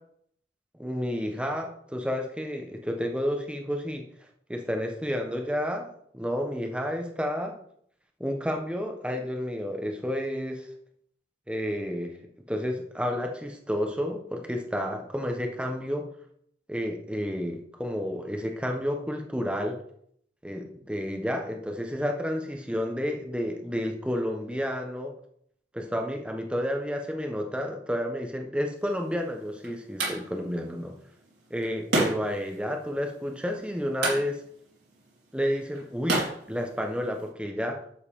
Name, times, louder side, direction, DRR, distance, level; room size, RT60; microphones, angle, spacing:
voice 1, 0.8-4.0 4.5-7.6 8.2-10.7 11.5-12.2 12.5-16.0 16.7-19.8 20.4-25.1 25.7-30.9 31.5-34.4 35.3-36.2 36.5-37.8, equal, 5° right, 3 dB, 1.2 m, -30 dB
sound 1, 28.8-37.3, right 2 dB, 80° right, 4.4 m, -34 dB
11.5 x 7.9 x 3.8 m, 0.67 s
head